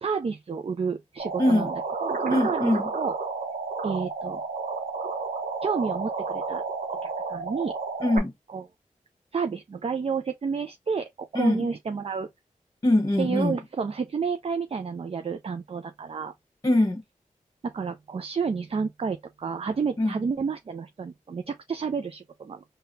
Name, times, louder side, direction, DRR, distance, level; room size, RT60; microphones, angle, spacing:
voice 1, 0.0-1.7 2.0-3.1 3.8-4.4 5.6-6.6 7.0-7.7 8.5-8.6 9.3-12.3 13.2-16.3 17.6-22.6, right 5 dB, 45° right, 0.4 m, -30 dB
sound 1, 1.2-8.2, right 4 dB, 70° right, 0.8 m, -31 dB
voice 2, 1.4-1.7 2.3-2.9 8.0-8.3 11.3-11.7 12.8-13.6 16.6-17.0 20.0-20.1, left 1 dB, 25° left, 1.1 m, -23 dB
3.9 x 2.2 x 2.6 m
cardioid pair, 45°, 14 cm